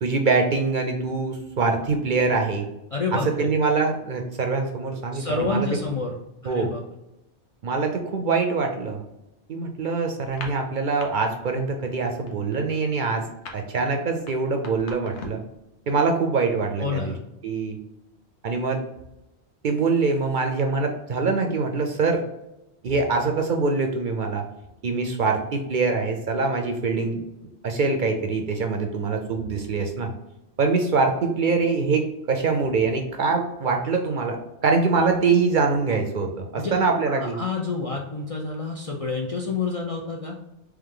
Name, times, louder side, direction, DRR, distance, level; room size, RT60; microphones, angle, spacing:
voice 1, 0.0-2.7 3.1-5.8 6.4-6.7 7.6-9.0 9.5-13.3 13.5-15.4 15.9-17.1 17.4-17.8 18.4-18.8 19.6-22.2 22.8-24.5 24.8-27.2 27.6-30.1 30.6-37.4, right 4 dB, 55° right, 4 dB, 0.6 m, -24 dB
voice 2, 2.9-3.5 5.1-6.2 6.4-6.8 16.8-17.2 36.6-36.8 37.1-40.4, left 3 dB, 50° left, 0 dB, 0.4 m, -28 dB
sound 1, 10.3-11.1 11.4-11.7 12.0-15.5, left 3 dB, 85° left, 1.1 m, -40 dB
3.5 x 3.2 x 3.6 m, 0.90 s
omnidirectional pair, 1.1 m